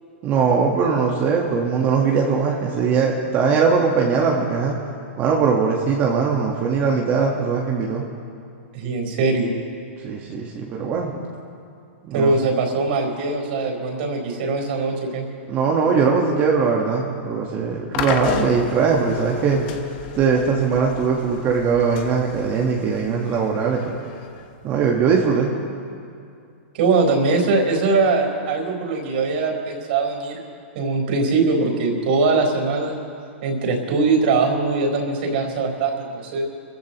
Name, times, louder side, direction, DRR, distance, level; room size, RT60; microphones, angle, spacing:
voice 1, 0.2-4.8 5.2-8.0 10.0-11.2 12.0-12.3 15.5-19.6 20.1-24.0 24.6-25.5, right 5 dB, 30° right, -1 dB, 1.4 m, -20 dB
voice 2, 8.7-9.5 12.1-15.3 26.7-30.4 30.7-32.9 33.4-36.4, right 3 dB, 55° right, 1 dB, 4.4 m, -21 dB
sound 1, 17.9-25.0, left 7 dB, 45° left, 1.2 m, -33 dB
28.5 x 15.5 x 3.0 m, 2.4 s
hypercardioid pair, 150°, 7 cm